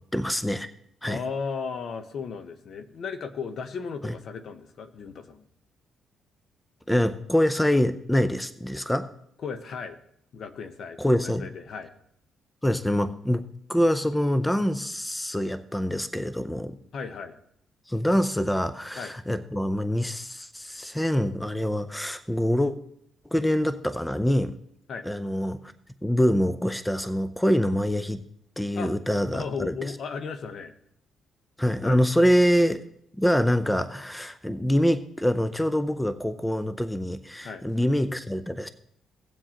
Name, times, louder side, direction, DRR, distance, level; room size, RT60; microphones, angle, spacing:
voice 1, 0.1-0.7 1.0-1.2 4.0-4.1 6.9-9.1 11.0-11.5 12.6-13.4 13.7-16.8 17.9-22.8 23.3-24.6 25.0-25.6 26.0-28.2 28.6-29.9 31.6-32.8 33.2-38.7, equal, 5° left, 11 dB, 0.5 m, -25 dB
voice 2, 1.0-5.4 9.4-10.0 10.3-11.9 16.9-17.3 19.0-19.1 24.9-25.0 28.7-28.9 29.3-30.7 31.8-32.0 37.4-37.6, left 5 dB, 60° left, 9 dB, 0.9 m, -35 dB
17.5 x 7.5 x 2.9 m, 0.70 s
cardioid pair, 90°, 0 cm